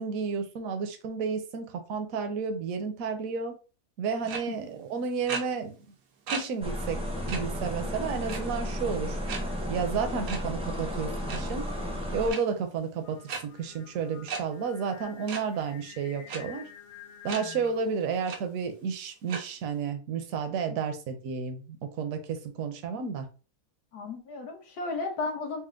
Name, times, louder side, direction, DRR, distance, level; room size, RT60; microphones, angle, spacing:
voice 1, 0.0-3.6 4.0-5.8 6.3-7.0 7.3-9.2 9.7-11.7 12.1-16.7 17.2-23.3, right 5 dB, 65° right, 6 dB, 1.0 m, -32 dB
sound 1, 4.3-4.4 5.3-5.4 6.3-6.4 6.8-6.9 7.3-7.4 8.3-8.6 9.3-9.4 10.3-10.4 11.1-11.4 12.3-12.4 13.3-13.4 14.3-14.4 15.3-15.4 16.3-16.4 17.3-17.4 17.9-18.0 18.3-18.4 19.3-19.4, right 5 dB, 90° right, 1.3 m, -34 dB
sound 2, 6.6-12.3, equal, 5° right, 0.5 m, -33 dB
Singing, 13.0-18.1, left 9 dB, 60° left, 0.9 m, -49 dB
voice 2, 23.9-25.6, left 3 dB, 75° left, 2 dB, 1.5 m, -35 dB
4.3 x 2.1 x 3.7 m, 0.35 s
omnidirectional pair, 1.7 m